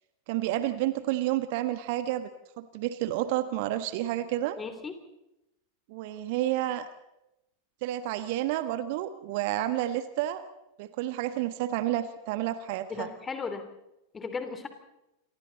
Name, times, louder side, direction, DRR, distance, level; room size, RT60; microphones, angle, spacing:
voice 1, 0.3-2.3 2.6-4.6 5.9-6.9 7.8-10.4 10.8-13.1, right 13 dB, 50° right, 12 dB, 1.4 m, -30 dB
voice 2, 4.6-5.0 12.9-13.7 14.1-14.7, left 5 dB, 15° left, 8 dB, 3.3 m, -36 dB
28.5 x 25.5 x 4.1 m, 0.89 s
figure-of-eight pair, 90°, 0 cm